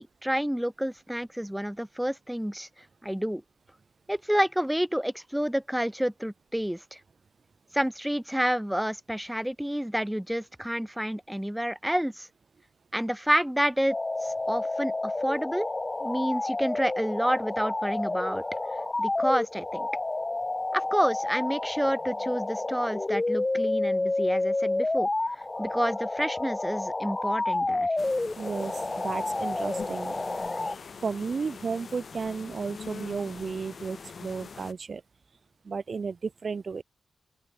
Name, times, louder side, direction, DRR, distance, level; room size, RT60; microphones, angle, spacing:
voice 1, 0.0-3.4 4.1-7.0 7.7-12.3 12.9-14.0 14.2-15.7 16.0-18.4 19.0-19.9 20.7-27.9, equal, 5° right, 2.4 m, -29 dB
sound 1, 13.9-30.8, left 2 dB, 25° left, 1.3 m, -30 dB
sound 2, 28.0-34.7, left 5 dB, 60° left, 3.3 m, -43 dB
voice 2, 28.4-30.2 31.0-35.0 35.6-36.8, right 5 dB, 55° right, 2.0 m, -33 dB
open air
wide cardioid pair, 90°, 0 cm